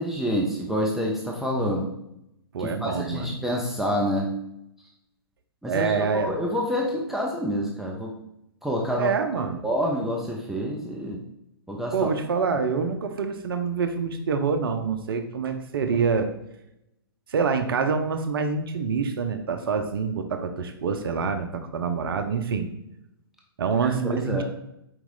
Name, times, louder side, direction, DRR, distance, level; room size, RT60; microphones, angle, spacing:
voice 1, 0.0-1.9 2.6-4.3 5.6-8.1 8.6-9.1 9.6-11.2 11.7-12.1 23.8-24.4, equal, 5° right, -2 dB, 0.4 m, -27 dB
voice 2, 2.5-3.3 5.7-6.3 9.0-9.7 11.9-16.3 17.3-22.7 23.6-24.4, right 5 dB, 65° right, 7 dB, 0.5 m, -26 dB
4.7 x 3.0 x 3.7 m, 0.81 s
figure-of-eight pair, 120°, 13 cm